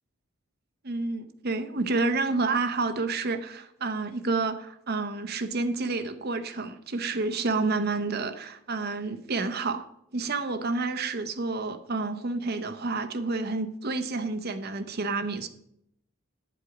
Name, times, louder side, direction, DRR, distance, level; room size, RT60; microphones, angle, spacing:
voice 1, 0.8-9.8 10.1-15.5, right 3 dB, 50° right, 8 dB, 0.8 m, -29 dB
9.9 x 7.8 x 4.8 m, 0.74 s
head